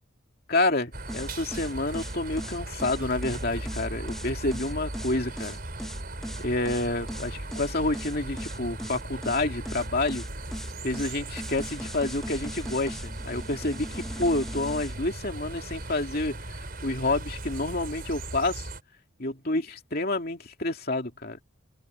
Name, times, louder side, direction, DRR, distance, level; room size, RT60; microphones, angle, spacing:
voice 1, 0.5-5.6 6.4-10.3 10.8-18.7 19.2-21.4, left 2 dB, 45° left, 2.8 m, -29 dB
sound 1, 0.9-18.8, right 1 dB, 45° right, 5.6 m, -37 dB
sound 2, 1.1-15.0, equal, ahead, 1.8 m, -39 dB
open air
head